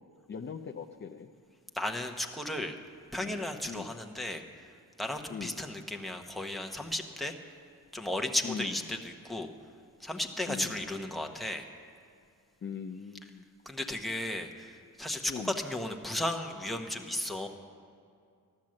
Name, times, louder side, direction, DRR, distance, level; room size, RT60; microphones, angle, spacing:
voice 1, 0.3-1.3 3.2-3.4 3.7-4.0 5.3-5.6 8.4-8.7 10.5-10.8 12.6-13.5 15.3-15.5, left 6 dB, 35° left, 4 dB, 0.5 m, -40 dB
voice 2, 1.7-2.8 3.1-4.7 5.0-7.5 7.9-9.5 10.0-11.7 13.7-17.5, left 1 dB, ahead, 2 dB, 0.9 m, -35 dB
15.0 x 12.0 x 7.6 m, 2.3 s
wide cardioid pair, 160°, 35 cm